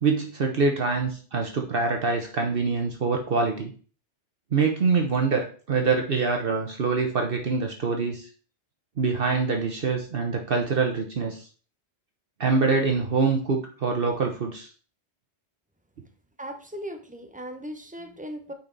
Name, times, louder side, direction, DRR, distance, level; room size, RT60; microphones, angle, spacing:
voice 1, 0.0-3.7 4.5-8.3 9.0-11.5 12.4-14.7, right 4 dB, 55° right, 3 dB, 1.1 m, -25 dB
voice 2, 16.4-18.5, equal, 10° right, 6 dB, 0.8 m, -38 dB
9.0 x 4.5 x 4.0 m, 0.40 s
omnidirectional pair, 1.2 m